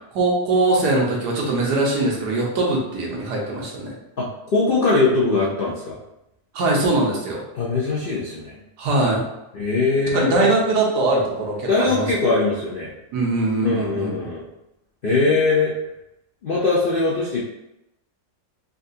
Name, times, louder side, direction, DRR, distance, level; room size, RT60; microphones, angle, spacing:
voice 1, 0.1-3.9 6.5-7.4 8.8-9.2 10.1-12.1 13.1-14.3, right 2 dB, 80° right, -2 dB, 1.4 m, -21 dB
voice 2, 4.2-6.0 7.5-8.6 9.5-10.5 11.7-12.9 13.6-14.5 15.0-15.7 16.4-17.4, left 3 dB, 65° left, -6 dB, 0.5 m, -21 dB
3.9 x 2.4 x 2.6 m, 0.88 s
omnidirectional pair, 1.7 m